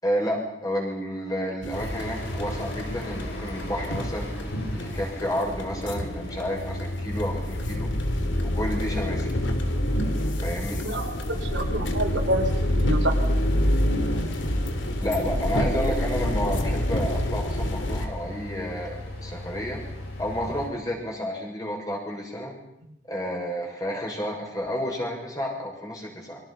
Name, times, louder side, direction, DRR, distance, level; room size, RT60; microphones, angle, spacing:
voice 1, 0.0-4.3 4.7-7.9 8.4-9.3 10.4-10.8 15.0-19.8 20.2-22.5 23.1-26.4, equal, 20° left, 0 dB, 6.6 m, -31 dB
sound 1, 1.6-18.1, left 1 dB, 80° left, 3.1 m, -27 dB
sound 2, 1.7-20.7, left 1 dB, 60° left, 7.8 m, -37 dB
voice 2, 10.8-13.2, right 1 dB, 85° right, 3 dB, 4.6 m, -28 dB
29.5 x 24.5 x 5.8 m, 0.79 s
head